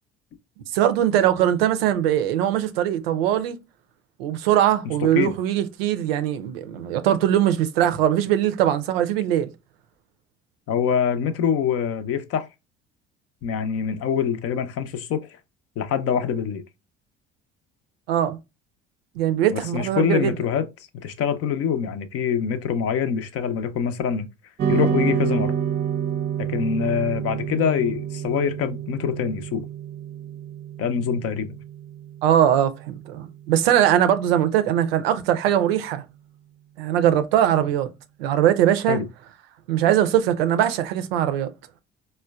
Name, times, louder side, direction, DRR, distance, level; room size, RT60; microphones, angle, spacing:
voice 1, 0.7-3.6 4.2-9.5 18.1-18.4 19.2-20.3 32.2-36.0 36.8-37.9 38.2-39.0 39.7-41.5, right 11 dB, 80° right, 0.5 m, -21 dB
voice 2, 10.7-12.5 13.4-15.2 15.8-16.6 19.5-20.6 21.0-24.3 24.7-25.5 26.4-29.6 30.8-31.6 38.9-39.1, left 7 dB, 50° left, 0.6 m, -24 dB
sound 1, 24.6-33.1, right 8 dB, 35° right, 0.5 m, -28 dB
4.3 x 2.2 x 2.3 m
hypercardioid pair, 60°, 30 cm